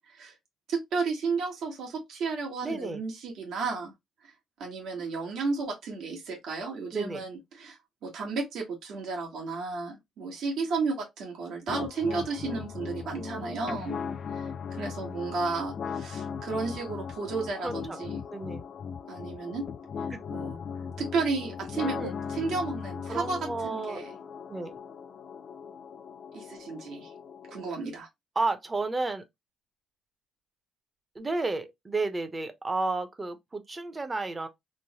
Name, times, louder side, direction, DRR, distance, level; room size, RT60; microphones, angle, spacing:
voice 1, 0.7-3.9 4.2-4.3 4.6-14.0 14.3-18.2 19.1-19.6 20.3-20.6 21.0-24.1 26.3-27.1 27.5-28.1, right 4 dB, 75° right, 1.2 m, -33 dB
voice 2, 2.6-3.0 6.9-7.3 13.2-13.9 17.6-18.0 18.3-18.6 20.1-20.2 21.8-22.1 23.1-24.0 24.5-24.7 28.4-29.2 31.1-34.5, right 3 dB, 25° right, 0.6 m, -32 dB
sound 1, 11.7-27.7, left 6 dB, 55° left, 0.3 m, -38 dB
3.1 x 2.1 x 2.8 m
cardioid pair, 90°, 0 cm